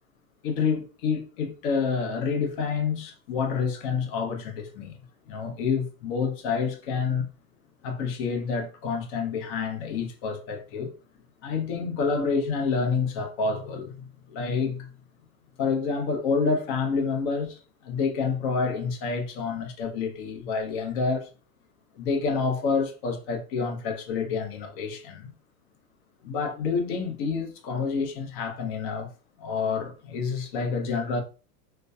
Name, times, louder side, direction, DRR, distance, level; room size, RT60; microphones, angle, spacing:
voice 1, 0.4-5.0 5.3-7.3 7.8-10.9 11.4-14.9 15.6-21.3 21.9-25.3 26.2-29.1 29.4-31.2, left 5 dB, 40° left, 0.6 m, -28 dB
2.5 x 2.2 x 2.3 m
supercardioid pair, 155°, 41 cm